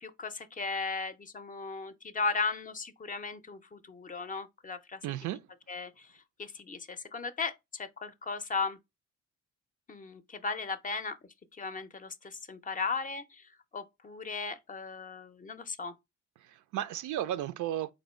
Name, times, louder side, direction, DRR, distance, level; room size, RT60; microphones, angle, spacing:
voice 1, 0.0-5.0 5.7-6.1 6.4-8.8 9.9-11.2 11.5-15.9, left 4 dB, 30° left, 0.5 m, -36 dB
voice 2, 5.0-5.4 16.4-17.9, right 12 dB, 75° right, 0.4 m, -34 dB
3.6 x 2.7 x 4.2 m
cardioid pair, 90°, 30 cm